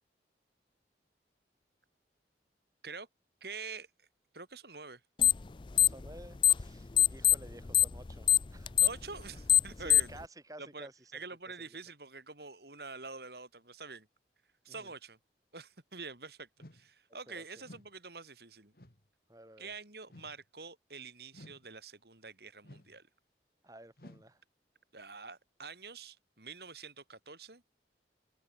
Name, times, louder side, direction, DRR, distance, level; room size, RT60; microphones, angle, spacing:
voice 1, 3.4-3.9 4.3-5.0 8.8-10.2 10.6-14.1 14.6-15.2 15.5-18.7 19.6-23.0 24.9-27.6, right 4 dB, 65° right, 3.9 m, -46 dB
sound 1, 5.2-5.5 5.7-6.7 7.0-10.2, left 10 dB, 25° left, 0.4 m, -23 dB
voice 2, 5.8-8.7 9.8-10.9 14.7-14.9 17.3-17.6 19.3-19.7 23.6-24.4, right 1 dB, 20° right, 5.2 m, -52 dB
sound 2, 16.6-16.9 17.6-17.9 18.7-19.1 20.1-20.4 21.3-21.7 22.6-23.0 24.0-24.3, left 1 dB, 55° left, 3.0 m, -54 dB
open air
head